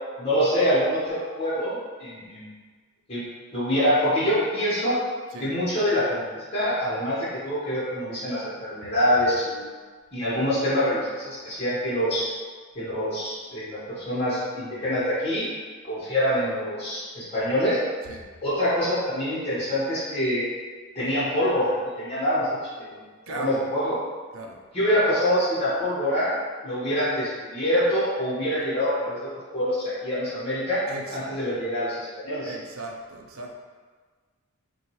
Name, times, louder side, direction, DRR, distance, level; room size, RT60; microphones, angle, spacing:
voice 1, 0.2-2.5 3.1-3.2 3.5-5.0 5.4-9.7 10.1-12.2 12.7-15.5 15.8-17.8 18.4-20.5 20.9-22.5 22.8-24.0 24.7-26.3 26.6-30.8 31.1-32.5, equal, 25° left, -10 dB, 1.1 m, -25 dB
voice 2, 23.3-23.6 24.3-24.6 30.9-31.4 32.4-33.5, right 2 dB, 70° right, 2 dB, 0.6 m, -38 dB
5.7 x 2.3 x 3.1 m, 1.5 s
head